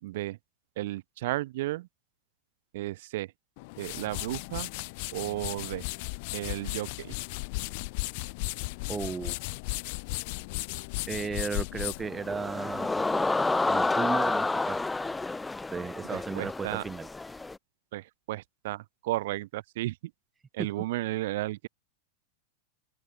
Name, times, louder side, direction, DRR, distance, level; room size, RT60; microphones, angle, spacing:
voice 1, 0.0-0.4 0.8-1.9 2.7-3.3 3.8-4.7 5.1-5.8 6.3-7.1 16.1-16.8 17.9-20.0 20.5-21.7, right 17 dB, 55° right, 0.5 m, -33 dB
sound 1, 3.6-12.9, left 28 dB, 50° left, 1.5 m, -36 dB
voice 2, 8.9-9.4 11.1-13.4 13.7-14.8 15.7-17.1, right 5 dB, 15° right, 1.8 m, -35 dB
sound 2, 12.0-17.6, left 3 dB, 10° left, 0.8 m, -29 dB
open air
figure-of-eight pair, 90°, 0 cm